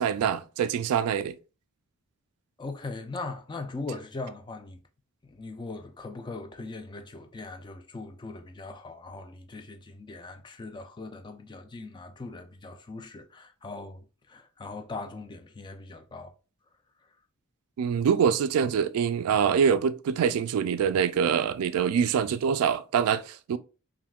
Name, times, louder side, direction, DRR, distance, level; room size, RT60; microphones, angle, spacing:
voice 1, 0.0-1.3 17.8-23.6, right 7 dB, 85° right, 0.3 m, -25 dB
voice 2, 2.6-4.8 5.2-16.3, left 3 dB, 20° left, 0.3 m, -40 dB
3.5 x 2.6 x 2.3 m
head